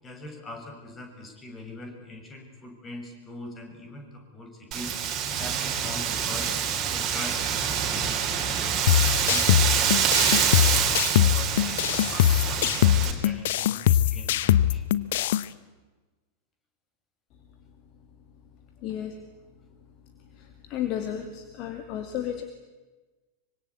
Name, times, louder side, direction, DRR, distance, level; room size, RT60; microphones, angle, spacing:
voice 1, 0.0-6.5 6.9-8.7 9.0-14.9, left 2 dB, 20° left, 3 dB, 7.1 m, -42 dB
Wind, 4.7-13.1, right 8 dB, 30° right, 3.9 m, -26 dB
sound 1, 8.9-15.4, left 12 dB, 55° left, 0.9 m, -22 dB
voice 2, 18.8-19.2 20.2-22.4, left 10 dB, 40° left, 6 dB, 2.3 m, -33 dB
25.0 x 25.0 x 8.5 m, 1.2 s
figure-of-eight pair, 90°, 0 cm